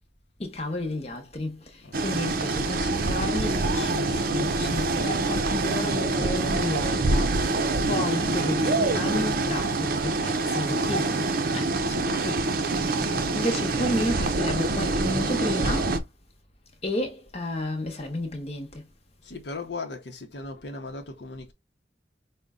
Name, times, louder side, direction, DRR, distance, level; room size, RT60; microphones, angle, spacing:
voice 1, 0.4-16.1 16.8-18.9, left 1 dB, 35° left, 1.0 m, -32 dB
voice 2, 1.8-2.3 19.2-21.5, left 3 dB, 65° left, 0.8 m, -38 dB
sound 1, 1.9-16.0, right 2 dB, 50° right, 0.6 m, -25 dB
5.1 x 2.2 x 3.6 m
head